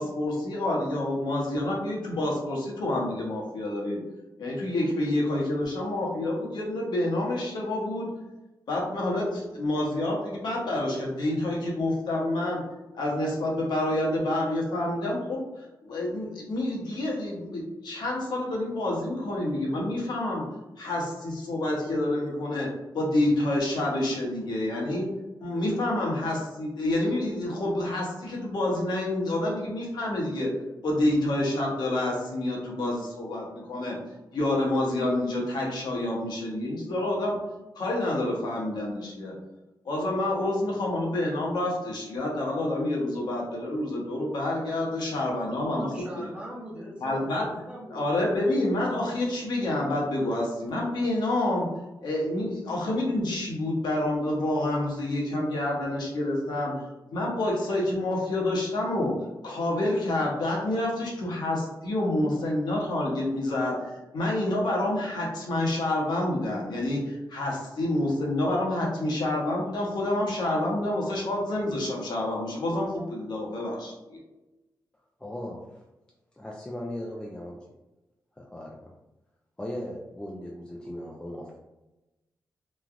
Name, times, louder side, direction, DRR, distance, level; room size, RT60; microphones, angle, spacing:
voice 1, 0.0-4.0 4.4-8.1 8.7-12.6 12.9-15.4 15.8-20.4 20.8-22.7 22.9-25.1 25.4-30.5 30.8-34.0 34.3-37.4 37.8-39.3 39.8-46.3 47.0-47.5 47.9-51.7 52.0-56.8 57.1-59.1 59.4-74.2, left 1 dB, 75° left, -2 dB, 0.8 m, -28 dB
voice 2, 45.5-48.3, right 1 dB, 15° right, -4 dB, 0.8 m, -41 dB
voice 3, 75.2-75.6 76.4-77.5 78.4-78.9 79.6-81.6, left 1 dB, 10° left, -2 dB, 0.3 m, -37 dB
3.1 x 2.3 x 2.4 m, 1.0 s
wide cardioid pair, 130°, 7 cm